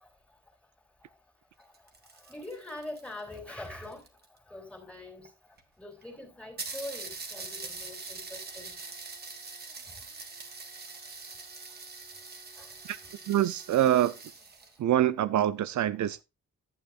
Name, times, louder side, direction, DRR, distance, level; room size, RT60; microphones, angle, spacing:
sound 1, 1.6-4.4 5.3-5.4 5.6-5.7 6.0-6.1 6.6-14.8, right 4 dB, 35° right, 1.6 m, -43 dB
voice 1, 2.3-4.0 4.5-5.3 5.8-8.8 12.6-12.7 13.0-13.1, left 1 dB, 5° left, 3.0 m, -43 dB
voice 2, 13.3-14.2 14.8-16.2, right 12 dB, 80° right, 0.6 m, -25 dB
11.5 x 8.4 x 2.4 m
wide cardioid pair, 140°, 29 cm